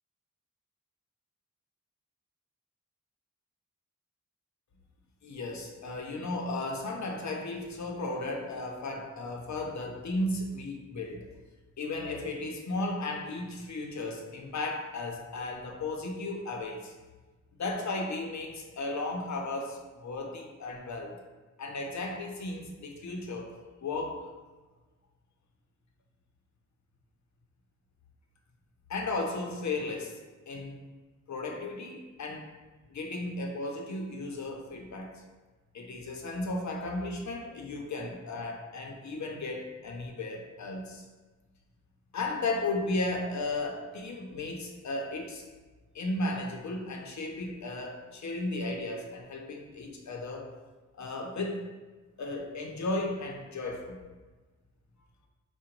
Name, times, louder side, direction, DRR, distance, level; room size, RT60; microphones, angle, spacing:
voice 1, 5.2-11.3 11.8-16.9 17.6-21.2 21.6-24.3 28.9-30.2 30.5-30.8 31.3-32.5 32.9-35.2 35.7-41.0 42.1-45.4 45.9-50.5 51.0-51.6 52.2-54.0, left 2 dB, 65° left, 2 dB, 0.7 m, -35 dB
3.8 x 2.2 x 4.4 m, 1.3 s
wide cardioid pair, 95°, 30 cm